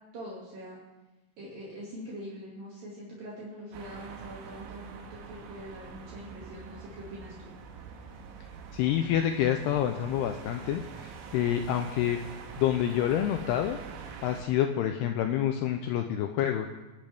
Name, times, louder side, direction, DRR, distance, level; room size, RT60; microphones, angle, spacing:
voice 1, 0.1-0.8 1.4-7.5, equal, 55° right, -5 dB, 3.7 m, -43 dB
sound 1, 3.7-14.4, right 6 dB, 85° right, 3.8 m, -45 dB
voice 2, 8.7-12.2 12.6-13.8 14.2-16.7, left 10 dB, 85° left, 5 dB, 2.4 m, -28 dB
25.0 x 10.5 x 3.5 m, 1.1 s
omnidirectional pair, 5.3 m